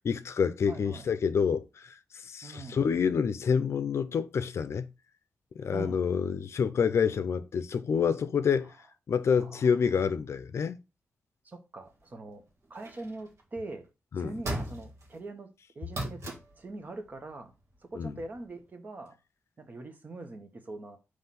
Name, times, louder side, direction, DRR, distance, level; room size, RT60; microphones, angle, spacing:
voice 1, 0.0-4.9 5.6-8.7 9.1-10.8 14.1-14.3 18.0-18.1, left 6 dB, 60° left, 0.6 m, -28 dB
voice 2, 0.7-1.1 2.4-2.8 5.7-6.0 8.6-8.7 9.4-10.1 11.4-13.9 14.2-17.5 17.8-19.2 19.6-21.0, right 2 dB, 35° right, 1.0 m, -43 dB
sound 1, 12.7-13.4 14.4-15.2 15.9-16.6 18.4-18.5, right 1 dB, 65° right, 1.6 m, -36 dB
5.7 x 3.2 x 5.7 m
wide cardioid pair, 180°, 5 cm